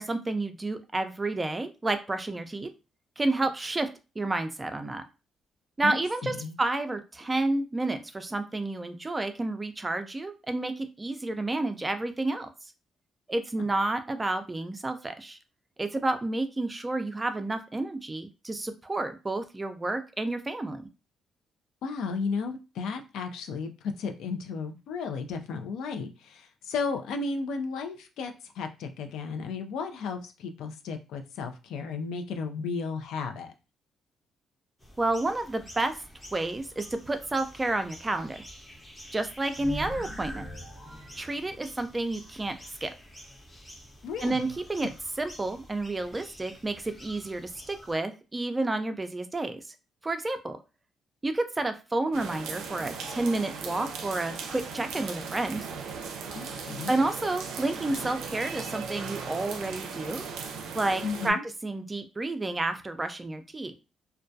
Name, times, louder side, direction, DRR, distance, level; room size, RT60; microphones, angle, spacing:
voice 1, 0.0-2.7 3.2-3.9 4.2-5.0 5.8-12.5 13.3-15.4 15.8-20.9 35.0-35.9 36.3-38.4 39.1-40.5 41.1-42.6 42.8-42.9 44.2-44.9 45.2-49.6 50.0-50.6 51.2-55.7 56.9-60.2 60.7-61.4 61.6-63.7, right 2 dB, 20° right, 8 dB, 0.4 m, -30 dB
voice 2, 5.8-6.5 21.8-23.7 24.0-33.5 44.0-44.4 56.3-56.9 61.0-61.4, left 4 dB, 85° left, 6 dB, 0.4 m, -34 dB
sound 1, 34.8-47.9, equal, 15° left, 0.6 m, -49 dB
sound 2, 39.5-42.1, equal, 60° left, 1.3 m, -41 dB
sound 3, 52.1-61.3, right 5 dB, 85° right, 0.4 m, -38 dB
2.2 x 2.2 x 2.6 m, 0.30 s
cardioid pair, 90°, 0 cm